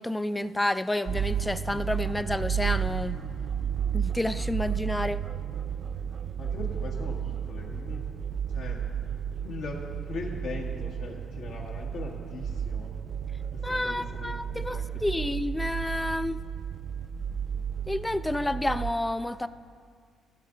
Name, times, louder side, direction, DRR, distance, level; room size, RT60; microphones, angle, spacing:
voice 1, 0.0-3.2 3.9-5.2 13.6-16.4 17.9-19.5, left 1 dB, 10° left, 14 dB, 0.3 m, -30 dB
sound 1, 1.1-18.9, right 8 dB, 55° right, 0.5 m, -33 dB
voice 2, 6.4-8.0 8.5-8.8 9.4-12.9 13.5-15.3 15.6-15.7, left 3 dB, 80° left, -1 dB, 1.7 m, -40 dB
16.5 x 7.2 x 3.8 m, 2.1 s
cardioid pair, 90°, 0 cm